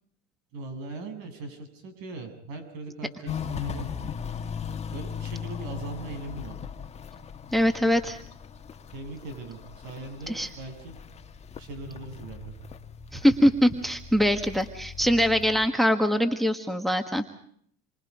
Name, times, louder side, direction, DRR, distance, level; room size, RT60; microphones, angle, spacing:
voice 1, 0.5-3.9 4.9-6.5 8.9-9.6 9.8-10.9 11.6-12.5, right 2 dB, 65° right, 6 dB, 8.0 m, -39 dB
Walk footsteps, 3.3-15.7, left 7 dB, 20° left, 1.4 m, -39 dB
voice 2, 7.5-8.2 10.3-10.5 13.1-17.2, equal, ahead, 8 dB, 1.5 m, -23 dB
28.0 x 25.0 x 5.0 m, 0.63 s
cardioid pair, 140°, 30 cm